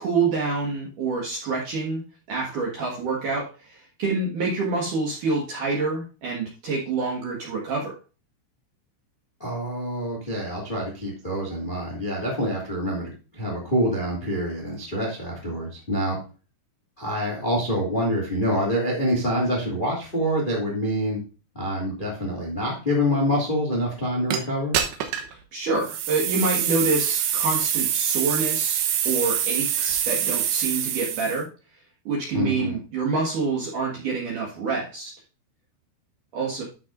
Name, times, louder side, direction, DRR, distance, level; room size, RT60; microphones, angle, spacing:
voice 1, 0.0-2.0 2.3-7.9 25.3-31.5 32.1-35.1 36.3-36.6, right 3 dB, 60° right, -3 dB, 2.2 m, -27 dB
voice 2, 9.4-16.2 17.0-21.2 21.5-24.7 32.3-32.8, equal, 85° left, -3 dB, 0.4 m, -26 dB
sound 1, 24.3-24.4 24.7-25.3 25.8-31.4, right 10 dB, 75° right, 2.4 m, -25 dB
12.5 x 6.1 x 2.6 m, 0.34 s
omnidirectional pair, 5.9 m